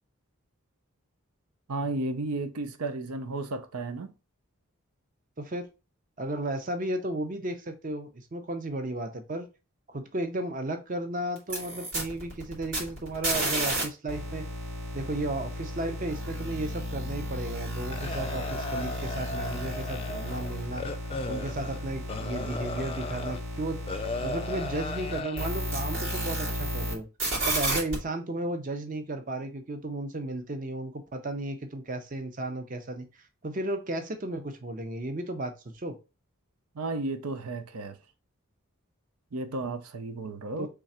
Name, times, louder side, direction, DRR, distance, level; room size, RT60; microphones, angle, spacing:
voice 1, 1.7-4.1 36.8-38.0 39.3-40.7, right 2 dB, 90° right, 0.6 m, -33 dB
voice 2, 5.4-5.7 6.2-9.5 9.9-14.4 14.9-20.8 21.3-23.8 24.2-27.1 27.5-33.0 33.4-36.0 40.6-40.7, right 1 dB, 35° right, 0.6 m, -34 dB
sound 1, 11.4-13.8 14.1-26.9 27.2-28.0, right 1 dB, 60° right, 2.4 m, -33 dB
sound 2, 17.9-23.4 23.9-25.5, left 2 dB, 25° left, 0.3 m, -36 dB
3.8 x 3.3 x 4.2 m
head